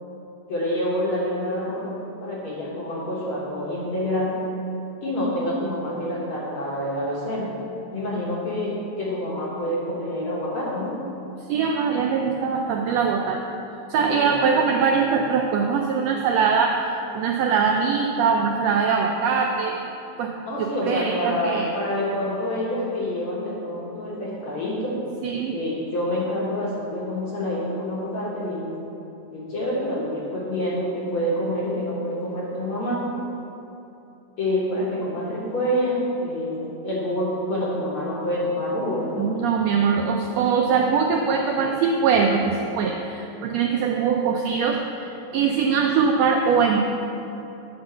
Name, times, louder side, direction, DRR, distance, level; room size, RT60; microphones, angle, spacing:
voice 1, 0.5-1.9 2.2-4.4 5.0-7.5 7.9-11.0 13.9-14.5 20.4-25.0 25.5-28.7 29.3-33.1 34.4-36.6 36.8-39.3, left 1 dB, 55° left, -6 dB, 1.8 m, -27 dB
voice 2, 11.5-13.4 13.9-19.8 20.2-20.3 20.6-21.7 25.2-25.5 39.2-46.8, right 6 dB, 80° right, 2 dB, 1.5 m, -22 dB
8.7 x 3.9 x 6.8 m, 2.8 s
omnidirectional pair, 3.4 m